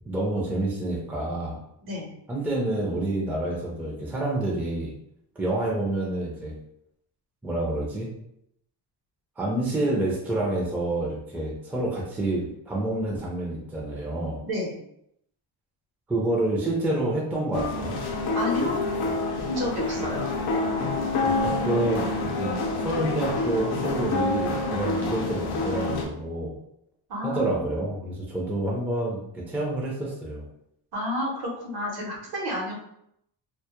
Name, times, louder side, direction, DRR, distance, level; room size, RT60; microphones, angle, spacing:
voice 1, 0.1-1.6 2.3-4.9 5.4-6.5 7.4-8.1 9.4-14.4 16.1-18.0 20.0-20.1 21.2-26.5 27.2-30.4, right 1 dB, 5° right, -4 dB, 0.4 m, -28 dB
voice 2, 14.4-14.7 18.3-18.8 19.5-20.3 27.1-27.6 30.9-32.7, left 1 dB, 60° right, -1 dB, 0.8 m, -30 dB
sound 1, 17.5-26.0, left 3 dB, 65° left, 0.6 m, -27 dB
2.2 x 2.0 x 2.8 m, 0.77 s
cardioid pair, 130°, 44 cm